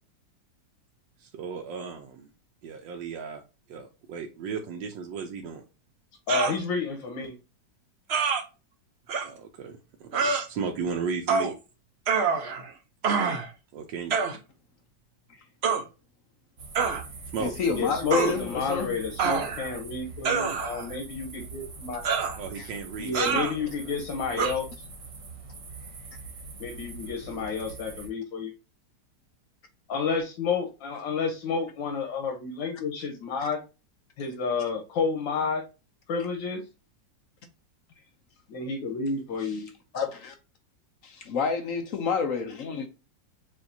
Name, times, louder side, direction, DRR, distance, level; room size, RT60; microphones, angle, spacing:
voice 1, 1.2-2.3 2.6-3.4 3.7-5.6 9.2-11.5 13.7-14.2 17.3-17.5 22.4-23.7, right 5 dB, 80° right, 1.3 m, -35 dB
voice 2, 6.3-7.3 17.7-22.0 23.0-24.9 26.6-28.5 29.9-33.6 34.2-35.6 36.1-36.6 38.5-39.7, left 5 dB, 85° left, 1.7 m, -30 dB
sound 1, 6.3-6.6 8.1-8.4 9.1-9.3 10.1-10.5 11.3-11.5 12.1-12.7 13.0-13.5 14.1-14.4 15.6-15.8 16.8-17.0 18.1-18.4 19.2-19.7 20.2-20.9 22.0-22.4 23.1-23.5 24.4-24.5, right 5 dB, 60° right, 0.6 m, -26 dB
sound 2, 16.6-28.1, right 3 dB, 45° right, 1.2 m, -43 dB
voice 3, 17.4-18.9 22.6-22.7 39.9-40.3 41.0-42.9, left 5 dB, 65° left, 0.9 m, -29 dB
6.9 x 2.8 x 2.6 m
omnidirectional pair, 2.0 m